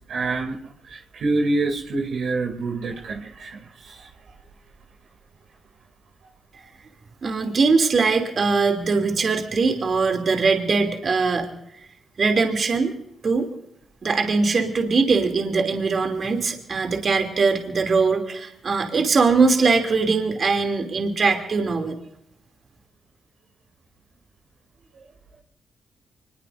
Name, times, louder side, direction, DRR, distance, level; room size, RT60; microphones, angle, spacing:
voice 1, 0.1-0.6 0.8-4.3, right 3 dB, 70° right, 3 dB, 2.8 m, -27 dB
voice 2, 7.2-11.5 12.2-12.9 13.2-13.5 14.0-22.0, right 4 dB, 50° right, 4 dB, 2.8 m, -21 dB
25.0 x 21.0 x 2.6 m, 0.77 s
supercardioid pair, 50°, 0 cm